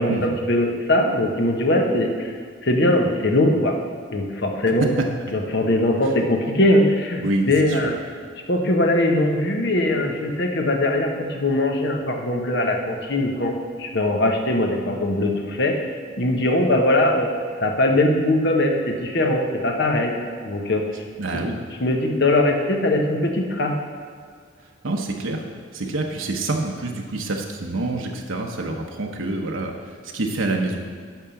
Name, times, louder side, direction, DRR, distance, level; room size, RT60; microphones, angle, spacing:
voice 1, 0.0-2.3 2.6-3.8 4.1-4.8 5.3-8.0 8.5-15.8 16.2-21.1 21.3-21.4 21.8-23.8, left 1 dB, 55° left, 2 dB, 1.1 m, -21 dB
voice 2, 7.2-7.9 21.2-21.6 24.8-25.4 25.7-30.8, right 2 dB, 80° right, 1 dB, 0.9 m, -27 dB
10.5 x 3.7 x 7.0 m, 2.1 s
head